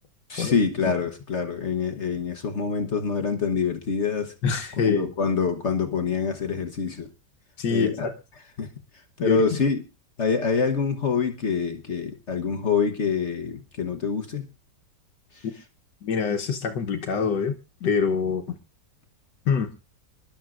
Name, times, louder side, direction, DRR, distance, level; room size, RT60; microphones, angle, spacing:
voice 1, 0.3-4.3 4.8-7.1 7.7-8.1 8.6-8.7 9.2-9.8 10.2-14.5 15.3-15.4, left 5 dB, 45° left, 6 dB, 1.2 m, -26 dB
voice 2, 4.4-5.1 7.6-8.1 9.2-9.6 16.0-17.5 17.8-18.6 19.5-19.7, left 6 dB, 75° left, 5 dB, 1.6 m, -25 dB
26.5 x 11.5 x 2.5 m, 0.29 s
omnidirectional pair, 1.9 m